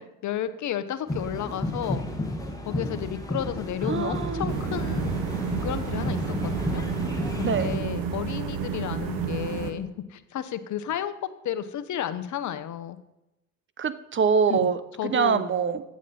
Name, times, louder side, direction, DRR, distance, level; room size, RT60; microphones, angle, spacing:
voice 1, 0.2-2.0 2.6-5.2 5.6-6.8 7.4-11.1 11.4-13.0 14.5-14.7 15.0-15.5, left 10 dB, 55° left, 12 dB, 0.8 m, -32 dB
sound 1, 1.1-7.8, left 1 dB, 10° left, 1.5 m, -31 dB
voice 2, 3.9-4.4 7.4-7.7 13.8-15.8, right 6 dB, 35° right, 13 dB, 0.7 m, -24 dB
sound 2, 4.5-9.7, right 6 dB, 70° right, 1.1 m, -31 dB
8.6 x 7.2 x 4.2 m, 0.94 s
supercardioid pair, 65°, 36 cm